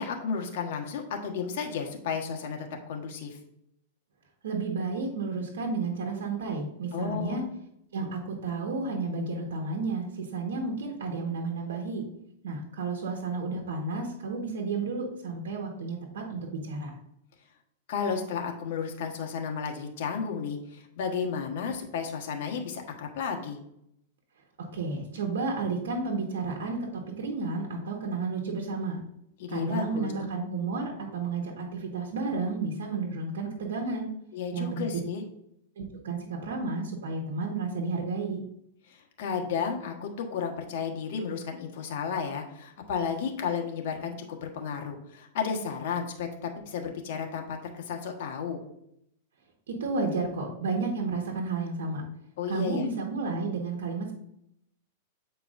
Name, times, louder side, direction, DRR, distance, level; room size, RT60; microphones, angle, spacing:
voice 1, 0.0-3.4 6.9-7.5 17.9-23.6 29.4-30.1 34.3-35.2 38.9-48.6 52.4-52.9, left 6 dB, 60° left, 3 dB, 1.2 m, -33 dB
voice 2, 4.4-7.4 7.9-12.0 12.4-16.9 24.6-29.0 29.5-34.1 34.5-34.9 35.8-38.4 49.7-52.0 52.5-54.1, right 3 dB, 85° right, 1 dB, 1.3 m, -32 dB
8.0 x 4.6 x 2.5 m, 0.76 s
supercardioid pair, 150°, 0 cm